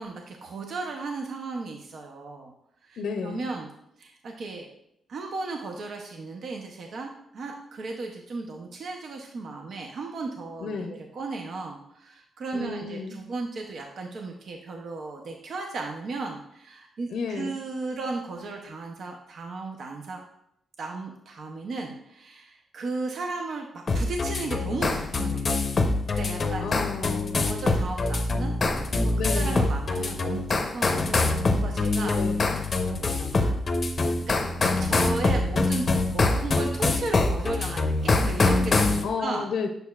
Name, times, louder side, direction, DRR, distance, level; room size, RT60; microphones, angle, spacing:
voice 1, 0.0-2.5 2.8-3.7 4.0-4.7 5.1-20.2 20.8-25.5 26.1-26.8 27.4-28.5 28.9-32.2 32.5-33.6 34.2-39.5, right 3 dB, 60° right, 2 dB, 0.7 m, -35 dB
voice 2, 3.0-3.5 10.6-11.0 12.5-13.2 17.1-17.5 26.6-27.4 29.2-29.7 32.1-32.5 39.0-39.7, left 4 dB, 80° left, 5 dB, 0.5 m, -32 dB
sound 1, 23.9-39.0, left 3 dB, 35° left, 0.7 m, -24 dB
6.5 x 6.5 x 2.4 m, 0.76 s
cardioid pair, 115°, 0 cm